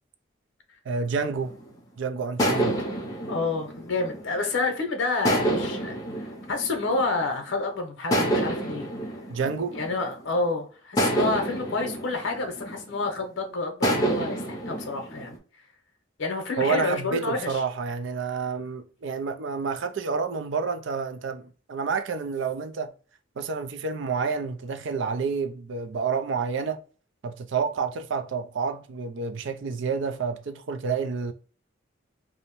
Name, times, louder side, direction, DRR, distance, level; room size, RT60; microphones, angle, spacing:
voice 1, 0.9-1.5 2.0-2.8 9.3-9.7 16.6-22.9 23.4-26.8 27.2-31.3, right 5 dB, 65° right, 0.4 m, -29 dB
sound 1, 1.5-1.8 2.4-4.6 5.2-7.5 8.1-10.3 11.0-13.2 13.8-15.4, right 1 dB, 20° left, 0.6 m, -28 dB
voice 2, 3.3-6.0 6.5-8.9 9.7-15.4 16.2-17.6, left 3 dB, 70° left, 0.7 m, -29 dB
2.6 x 2.0 x 2.9 m
head